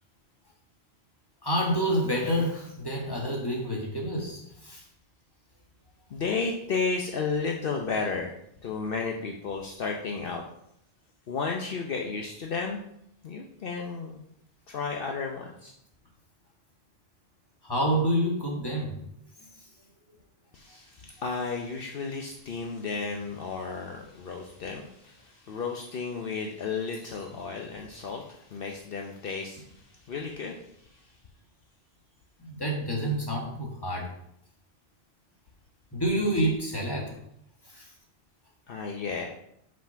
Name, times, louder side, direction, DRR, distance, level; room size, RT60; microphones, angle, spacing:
voice 1, 1.4-4.8 17.6-18.9 32.4-34.1 35.9-37.1 37.7-37.8, equal, 20° left, -1 dB, 1.7 m, -28 dB
voice 2, 6.1-8.3 8.6-10.4 11.3-12.8 13.2-14.2 14.7-15.7 20.5-31.2 38.7-39.4, left 4 dB, 65° left, 2 dB, 0.9 m, -33 dB
5.8 x 5.0 x 5.7 m, 0.74 s
omnidirectional pair, 1.0 m